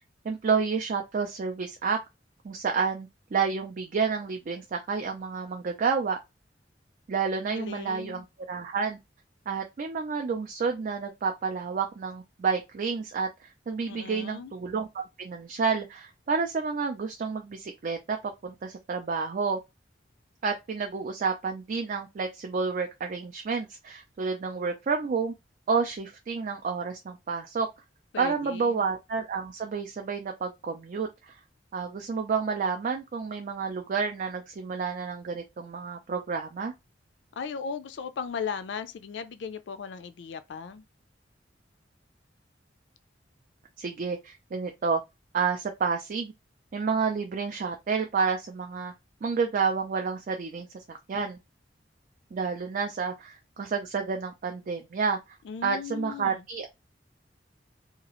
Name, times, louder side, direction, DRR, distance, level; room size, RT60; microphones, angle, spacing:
voice 1, 0.2-2.0 2.4-6.2 7.1-9.0 9.5-19.6 20.4-25.3 25.7-27.7 28.2-31.4 31.7-36.7 43.8-45.0 45.3-46.3 46.7-48.9 49.2-51.4 52.3-55.4 55.6-56.7, right 5 dB, 50° right, 0.4 m, -30 dB
voice 2, 7.4-8.3 13.9-14.5 28.1-28.8 37.4-40.8 55.4-56.4, left 6 dB, 75° left, 0.4 m, -37 dB
2.8 x 2.4 x 2.9 m
head